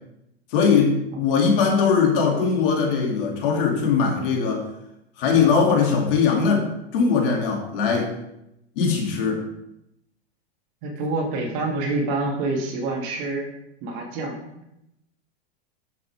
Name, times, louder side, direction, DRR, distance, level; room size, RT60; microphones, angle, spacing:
voice 1, 0.5-4.6 5.2-6.7 6.9-8.1 8.8-9.4, left 5 dB, 60° left, 0 dB, 2.7 m, -20 dB
voice 2, 10.8-13.5 13.8-14.4, right 2 dB, 45° right, -1 dB, 2.6 m, -27 dB
11.5 x 7.1 x 3.6 m, 0.84 s
supercardioid pair, 150°, 31 cm